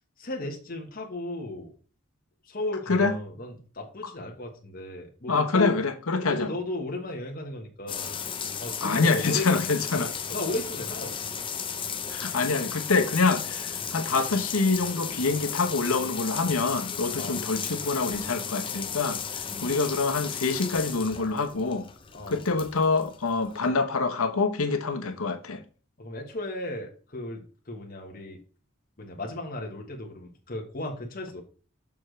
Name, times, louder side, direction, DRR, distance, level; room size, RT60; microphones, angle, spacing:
voice 1, 0.2-1.7 2.4-5.8 6.2-8.2 8.6-11.2 13.8-13.9 17.2-17.4 19.5-19.7 22.1-22.4 26.0-27.4 27.7-28.4 29.0-31.4, left 2 dB, 40° left, 1.2 m, -35 dB
voice 2, 5.3-6.5 8.8-10.1 12.1-19.2 19.6-21.9 22.3-25.6, left 4 dB, 85° left, 0.9 m, -26 dB
sound 1, 7.9-23.7, left 7 dB, 25° left, 0.6 m, -35 dB
7.0 x 6.3 x 3.2 m
head